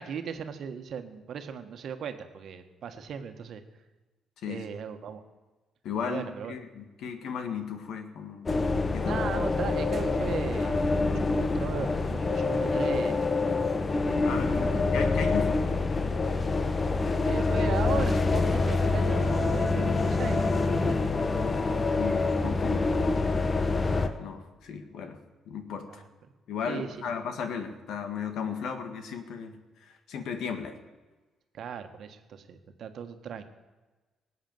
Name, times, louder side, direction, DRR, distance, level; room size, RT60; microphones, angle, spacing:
voice 1, 0.0-3.6 4.5-5.2 6.0-6.5 7.0-7.1 9.0-13.2 14.4-14.8 17.2-21.0 21.3-21.4 25.9-26.0 26.7-27.0 31.5-33.4, right 7 dB, 65° right, 7 dB, 1.5 m, -37 dB
voice 2, 5.8-8.5 8.9-9.2 14.2-15.7 21.9-22.9 23.9-25.2 25.5-26.0 26.5-30.8, left 6 dB, 80° left, 7 dB, 1.8 m, -35 dB
sound 1, 8.5-24.1, left 3 dB, 30° left, 1.2 m, -26 dB
18.5 x 8.2 x 7.9 m, 1.2 s
cardioid pair, 90°, 0 cm